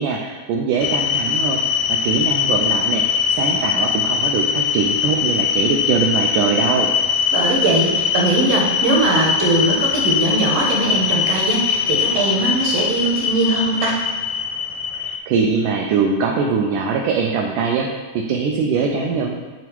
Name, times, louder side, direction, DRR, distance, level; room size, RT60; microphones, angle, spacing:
voice 1, 0.0-1.6 1.9-6.9 15.0-19.3, right 5 dB, 80° right, 1 dB, 1.8 m, -22 dB
sound 1, 0.8-15.2, left 7 dB, 80° left, 1.9 m, -21 dB
voice 2, 7.3-14.0, right 2 dB, 60° right, -1 dB, 1.7 m, -20 dB
9.9 x 3.4 x 4.6 m, 1.3 s
omnidirectional pair, 4.1 m